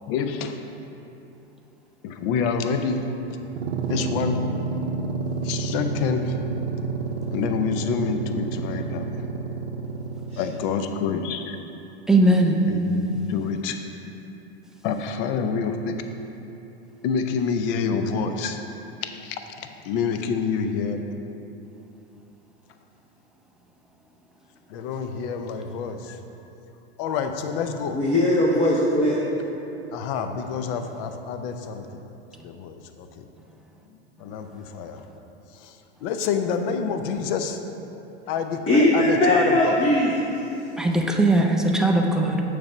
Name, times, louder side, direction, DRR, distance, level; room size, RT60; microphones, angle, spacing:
voice 1, 0.1-0.6 2.0-3.0 3.9-4.4 5.4-6.3 7.3-9.2 10.4-11.6 12.7-13.8 14.8-15.9 17.0-18.6 19.0-21.0 24.7-26.2 27.0-28.0 28.6-28.8 29.9-32.0 32.4-33.2 34.2-35.0 35.5-35.7 36.0-37.6 38.3-39.8, left 6 dB, 55° left, 7 dB, 0.6 m, -27 dB
sound 1, 3.4-10.8, right 4 dB, 80° right, 0.7 m, -30 dB
voice 2, 12.1-12.6 40.8-42.4, right 1 dB, ahead, 1 dB, 0.3 m, -19 dB
voice 3, 27.9-29.2 38.7-40.3, left 1 dB, 20° left, -4 dB, 0.7 m, -20 dB
6.9 x 3.4 x 5.4 m, 3.0 s
hypercardioid pair, 105°, 33 cm